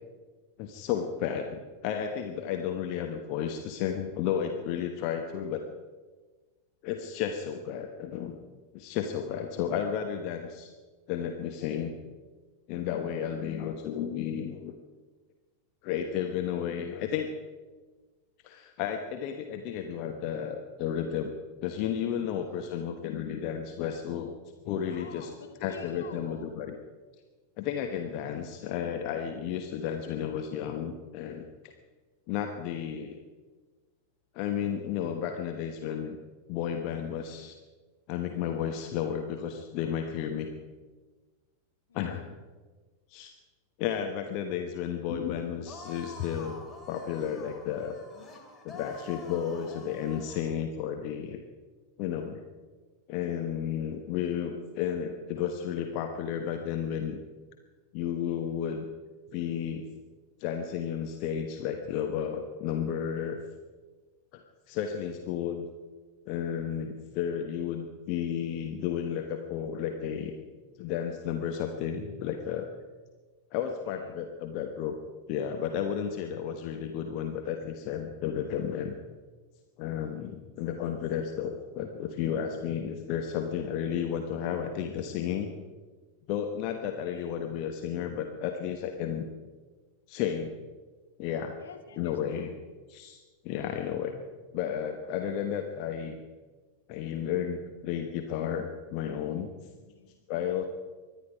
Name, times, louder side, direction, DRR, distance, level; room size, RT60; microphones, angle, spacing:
voice 1, 0.6-5.6 6.8-8.4 8.7-10.7 11.1-12.0 12.7-14.7 15.8-17.3 18.4-21.3 21.6-24.3 24.6-25.3 25.6-26.8 27.6-31.5 32.3-33.2 34.3-36.2 36.5-37.5 38.1-40.5 41.9-42.2 43.1-43.3 43.8-46.6 46.9-47.9 48.6-51.4 52.0-52.4 53.1-57.2 57.9-58.9 59.3-59.9 60.4-63.4 64.3-65.6 66.3-70.3 70.8-72.7 73.5-75.0 75.3-78.9 79.8-85.5 86.3-89.3 90.1-90.5 91.2-91.6 92.0-92.6 92.9-93.2 93.4-94.2 94.5-96.2 96.9-99.5 100.3-100.6, left 8 dB, 45° left, 4 dB, 1.2 m, -32 dB
voice 2, 22.3-22.6 24.7-26.5 41.9-42.2 73.9-74.1 79.8-80.2 87.1-87.4 91.6-92.5 99.8-100.1, left 5 dB, 65° left, 3 dB, 2.2 m, -48 dB
sound 1, 45.7-50.6, left 3 dB, 15° left, 2.8 m, -47 dB
23.5 x 11.0 x 5.1 m, 1.4 s
figure-of-eight pair, 90°, 0 cm